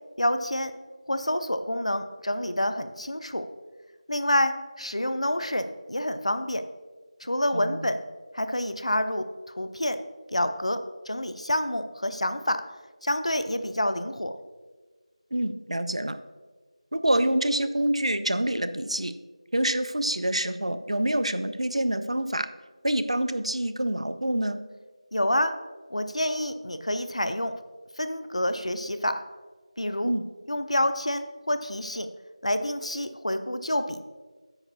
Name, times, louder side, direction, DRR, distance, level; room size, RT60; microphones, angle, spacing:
voice 1, 0.2-0.7 1.1-3.4 4.1-6.6 7.2-8.0 8.3-10.0 10.3-10.8 11.1-12.6 13.0-14.3 25.1-25.5 25.9-27.5 28.0-29.2 29.8-30.1 30.5-32.1 32.4-34.0, left 1 dB, 60° left, 10 dB, 0.6 m, -28 dB
voice 2, 7.5-7.9 15.3-16.2 16.9-19.1 19.5-22.5 22.8-24.6 30.0-30.2, right 1 dB, 60° right, 11 dB, 0.5 m, -26 dB
9.1 x 8.9 x 2.7 m, 1.4 s
figure-of-eight pair, 180°, 4 cm